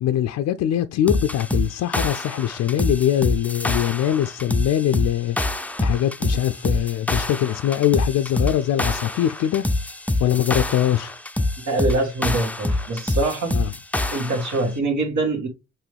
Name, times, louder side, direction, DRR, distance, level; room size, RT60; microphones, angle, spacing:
voice 1, 0.0-5.4 5.8-9.6 10.2-11.1 13.5-13.7, left 11 dB, 65° left, 0.4 m, -22 dB
sound 1, 1.1-14.6, left 2 dB, 5° left, 0.4 m, -26 dB
voice 2, 11.6-13.5 14.1-15.5, right 2 dB, 75° right, 1.9 m, -24 dB
6.0 x 2.6 x 3.3 m
cardioid pair, 90°, 30 cm